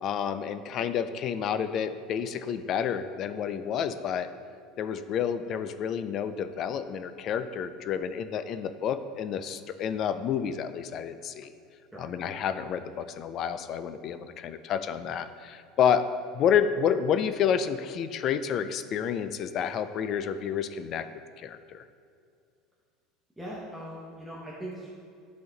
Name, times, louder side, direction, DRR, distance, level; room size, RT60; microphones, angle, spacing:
voice 1, 0.0-4.3 4.8-11.5 12.0-16.0 16.3-21.1 21.4-21.8, left 8 dB, 40° left, 11 dB, 0.3 m, -29 dB
voice 2, 23.4-24.9, right 1 dB, 5° right, -7 dB, 1.0 m, -40 dB
10.5 x 4.1 x 3.9 m, 2.4 s
cardioid pair, 160°, 0 cm